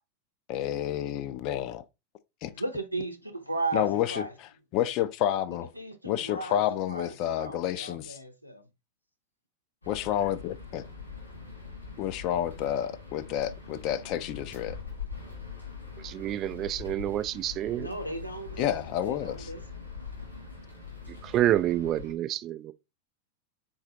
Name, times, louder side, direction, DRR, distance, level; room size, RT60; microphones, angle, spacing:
voice 1, 0.5-1.8 2.4-2.5 3.7-5.7 6.0-8.2 9.9-10.8 12.0-14.8 18.6-19.5, left 11 dB, 40° left, 0.4 m, -30 dB
voice 2, 2.5-4.3 5.7-6.6 6.9-8.6 17.8-19.6, right 2 dB, 90° right, 0.7 m, -36 dB
sound 1, 9.8-22.1, left 5 dB, 85° left, 2.3 m, -43 dB
voice 3, 16.0-17.9 21.2-22.7, right 13 dB, 35° right, 0.3 m, -28 dB
4.0 x 3.9 x 2.8 m
figure-of-eight pair, 90°, 0 cm